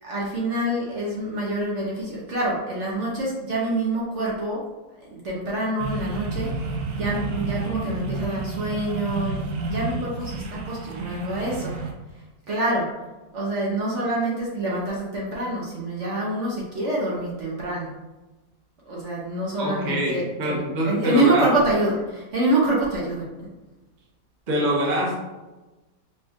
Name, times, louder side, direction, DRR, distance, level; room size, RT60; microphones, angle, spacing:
voice 1, 0.0-4.6 5.0-11.7 12.5-12.9 13.3-17.9 18.9-23.3, right 1 dB, 55° right, -5 dB, 1.1 m, -26 dB
sound 1, 5.8-11.9, right 3 dB, 75° right, 1.1 m, -30 dB
voice 2, 19.6-21.4 24.5-25.2, right 1 dB, 35° right, -3 dB, 0.8 m, -25 dB
5.1 x 2.4 x 3.5 m, 1.1 s
omnidirectional pair, 1.7 m